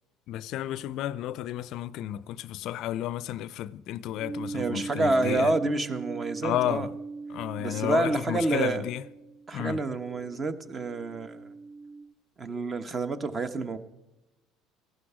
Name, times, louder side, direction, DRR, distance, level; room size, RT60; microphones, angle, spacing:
voice 1, 0.3-5.5 6.4-6.9 7.3-9.0 9.5-9.8, left 13 dB, 65° left, 0.4 m, -32 dB
sound 1, 4.2-12.0, right 3 dB, 15° right, 2.4 m, -40 dB
voice 2, 4.5-6.9 7.6-8.8 9.5-11.5 12.4-13.8, right 3 dB, 30° right, 1.1 m, -28 dB
15.0 x 12.0 x 4.9 m
hypercardioid pair, 70°, 0 cm